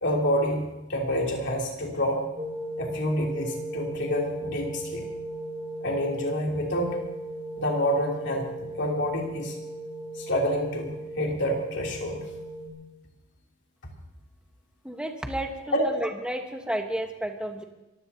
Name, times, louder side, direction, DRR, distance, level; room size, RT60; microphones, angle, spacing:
voice 1, 0.0-2.2 2.8-5.1 5.8-7.0 7.6-9.6 10.1-12.2 15.7-16.0, equal, 55° left, -1 dB, 3.2 m, -28 dB
sound 1, 2.4-12.7, right 1 dB, 30° right, 3.1 m, -37 dB
voice 2, 14.8-17.6, right 1 dB, 5° right, 4 dB, 1.3 m, -32 dB
24.0 x 16.0 x 2.8 m, 0.99 s
head